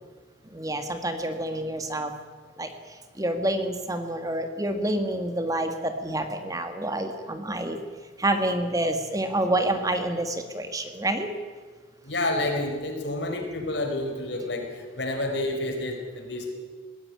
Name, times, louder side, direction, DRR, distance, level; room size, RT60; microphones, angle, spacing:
voice 1, 0.5-2.1 2.6-2.7 3.2-7.8 8.2-11.3, right 1 dB, 20° right, 7 dB, 1.7 m, -28 dB
voice 2, 12.0-16.5, left 2 dB, 70° left, 3 dB, 4.7 m, -29 dB
20.5 x 16.0 x 10.0 m, 1.5 s
head